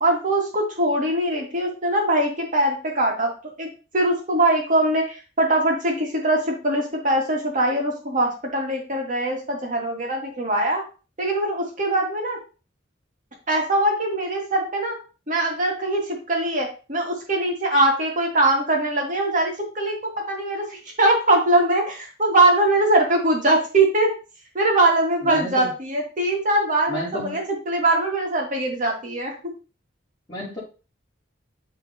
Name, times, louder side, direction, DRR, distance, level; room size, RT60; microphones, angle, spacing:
voice 1, 0.0-3.7 3.9-10.8 11.2-12.4 13.5-14.9 15.3-24.1 24.5-29.3, right 1 dB, 40° right, 0 dB, 2.0 m, -22 dB
voice 2, 25.2-25.7 26.9-27.4 30.3-30.6, equal, 20° left, -13 dB, 2.7 m, -31 dB
11.0 x 3.8 x 2.8 m, 0.34 s
head